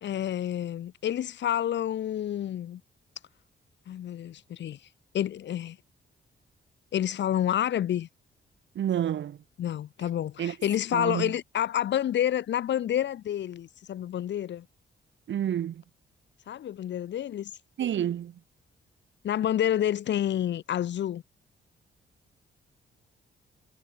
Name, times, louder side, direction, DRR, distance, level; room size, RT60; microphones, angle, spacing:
voice 1, 0.0-2.8 3.9-4.8 5.1-5.8 6.9-8.1 9.6-14.7 16.5-17.5 19.2-21.2, left 11 dB, 65° left, 0.7 m, -29 dB
voice 2, 8.7-9.4 10.4-10.5 10.9-11.3 15.3-15.8 17.8-18.4, right 10 dB, 70° right, 1.3 m, -29 dB
cardioid pair, 125°, 20 cm